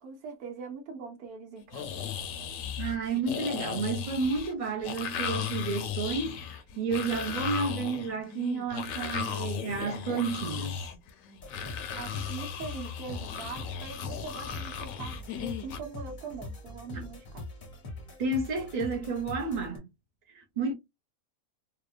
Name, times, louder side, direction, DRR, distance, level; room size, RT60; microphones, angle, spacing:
voice 1, 0.0-1.9 11.9-17.5, right 4 dB, 90° right, 1.2 m, -42 dB
sound 1, 1.7-15.8, left 8 dB, 70° left, 0.9 m, -36 dB
voice 2, 2.8-6.4 6.8-10.9 16.9-17.0 18.2-19.8 20.6-20.7, right 4 dB, 45° right, 0.5 m, -31 dB
sound 2, 11.4-19.8, left 2 dB, 45° left, 0.6 m, -43 dB
2.8 x 2.1 x 2.3 m
omnidirectional pair, 1.5 m